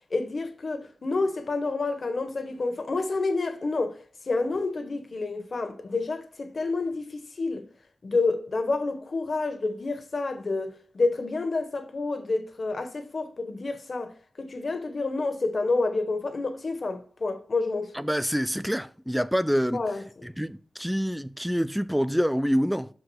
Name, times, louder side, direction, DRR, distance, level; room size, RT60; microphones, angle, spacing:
voice 1, 0.1-3.9 4.3-7.7 8.0-18.0 19.7-20.0, left 3 dB, 55° left, 1.2 m, -29 dB
voice 2, 17.9-19.8 20.2-22.9, equal, ahead, 0.3 m, -26 dB
12.5 x 4.8 x 2.3 m
cardioid pair, 70°, 0 cm